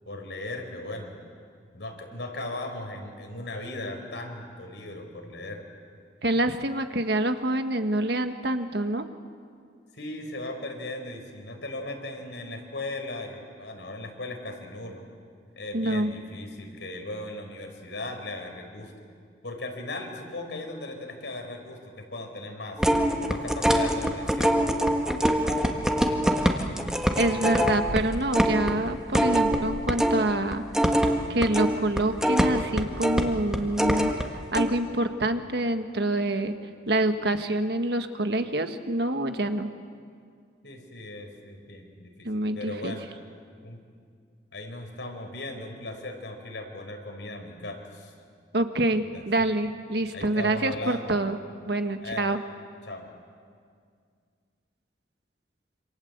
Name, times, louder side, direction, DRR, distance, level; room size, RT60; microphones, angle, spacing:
voice 1, 0.0-1.2 1.7-5.6 9.9-15.0 15.5-18.9 19.4-22.8 23.3-24.8 25.2-26.3 40.6-43.1 43.6-43.8 44.5-48.1 49.1-49.5 50.1-51.1 52.0-52.3 52.8-53.1, left 2 dB, 75° left, 4 dB, 4.7 m, -38 dB
voice 2, 6.2-9.1 15.7-16.1 27.2-30.6 31.3-34.1 34.5-36.5 36.9-39.7 42.2-43.0 48.5-51.4 51.7-52.4, right 1 dB, 65° right, 7 dB, 1.6 m, -26 dB
sound 1, 22.8-30.2 30.5-34.2 34.5-34.7, equal, 5° right, 1.6 m, -24 dB
27.0 x 27.0 x 8.1 m, 2.1 s
head